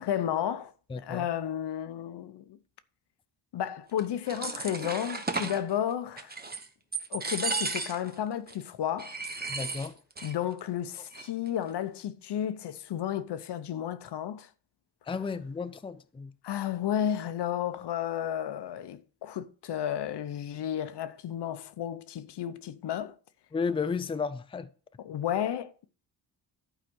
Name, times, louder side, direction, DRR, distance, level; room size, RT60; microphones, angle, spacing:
voice 1, 0.0-2.6 3.5-6.3 7.1-9.1 10.2-14.5 16.4-23.2 25.0-25.9, left 10 dB, 80° left, 0.8 m, -32 dB
voice 2, 0.9-1.3 9.5-10.0 15.1-16.3 23.5-24.7, left 5 dB, 15° left, 0.4 m, -33 dB
sound 1, 4.0-5.6 6.2-6.7 6.9-8.1 8.5-8.6 9.0-10.3 10.6-10.7 10.9-11.5, right 3 dB, 25° right, 1.1 m, -34 dB
11.5 x 4.9 x 6.2 m
wide cardioid pair, 135°, 40 cm